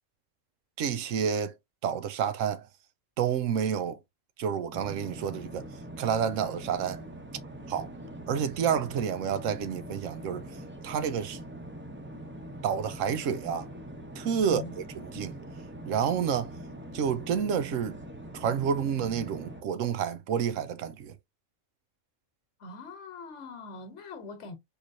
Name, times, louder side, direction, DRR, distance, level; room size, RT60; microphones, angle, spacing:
voice 1, 0.8-1.5 1.8-2.7 3.2-4.0 4.4-5.7 6.0-7.0 7.7-7.9 8.3-10.4 10.8-11.4 12.6-13.6 14.2-14.6 15.0-15.3 15.8-16.5 16.9-18.0 18.3-21.1, right 7 dB, 80° right, 1.0 m, -29 dB
sound 1, 4.7-19.6, right 1 dB, 15° right, 0.5 m, -43 dB
voice 2, 14.4-14.8 22.6-24.5, left 3 dB, 70° left, 1.2 m, -42 dB
4.6 x 3.2 x 2.6 m
omnidirectional pair, 1.3 m